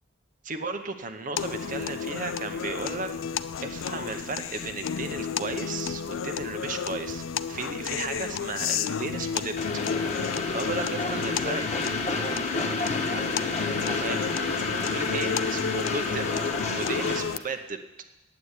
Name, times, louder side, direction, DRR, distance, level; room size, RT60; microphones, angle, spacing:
voice 1, 0.4-3.1 3.6-9.6 10.2-11.6 13.1-14.3 14.6-16.3 16.7-17.8, right 3 dB, 40° right, 7 dB, 0.8 m, -35 dB
sound 1, 1.4-17.4, left 7 dB, 85° left, 0.5 m, -32 dB
Train, 9.6-17.2, left 3 dB, 35° left, 1.1 m, -30 dB
voice 2, 10.9-14.1, left 2 dB, 20° left, 6 dB, 0.7 m, -41 dB
9.2 x 8.6 x 8.2 m, 1.0 s
head